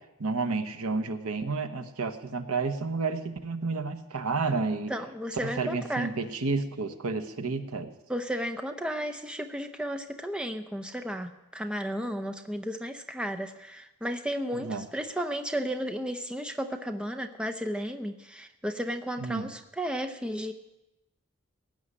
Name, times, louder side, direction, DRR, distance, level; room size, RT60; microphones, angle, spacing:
voice 1, 0.2-4.9 5.4-7.9 14.5-14.9 19.2-19.5, right 3 dB, 85° right, 9 dB, 1.0 m, -31 dB
voice 2, 4.9-6.1 8.1-20.5, equal, 5° right, 5 dB, 0.6 m, -33 dB
17.0 x 6.4 x 9.7 m, 0.98 s
head